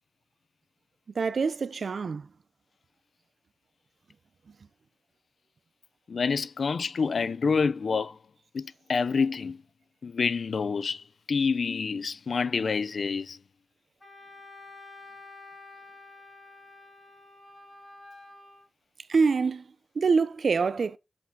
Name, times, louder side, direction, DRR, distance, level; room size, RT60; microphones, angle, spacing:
voice 1, 1.2-2.3 19.1-19.6 20.0-21.0, right 5 dB, 75° right, 0.7 m, -25 dB
voice 2, 6.1-8.1 8.5-9.6 10.0-11.0 11.3-13.4, left 5 dB, 80° left, 0.7 m, -27 dB
Wind instrument woodwind instrument, 14.0-18.6, left 2 dB, 20° left, 5.1 m, -49 dB
8.6 x 8.0 x 3.8 m
wide cardioid pair, 125°, 0 cm